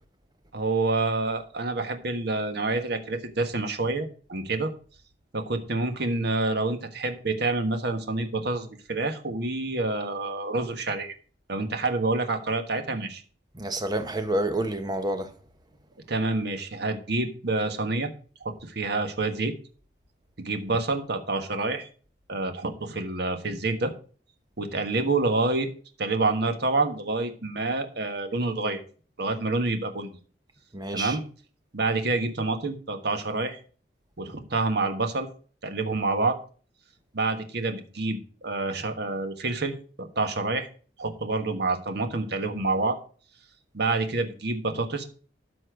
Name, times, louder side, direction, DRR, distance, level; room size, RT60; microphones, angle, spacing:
voice 1, 0.5-4.7 5.3-11.1 11.5-13.2 16.1-18.1 18.4-19.5 20.4-21.9 22.3-23.9 24.6-25.7 26.0-28.8 29.2-30.2 30.9-31.2 31.7-33.6 34.2-35.3 35.6-36.4 37.1-40.7 41.0-43.0 43.7-45.0, right 3 dB, 65° right, 1.4 m, -27 dB
voice 2, 13.5-15.3 30.7-31.2, right 1 dB, 25° right, 1.0 m, -28 dB
12.5 x 4.3 x 5.0 m
head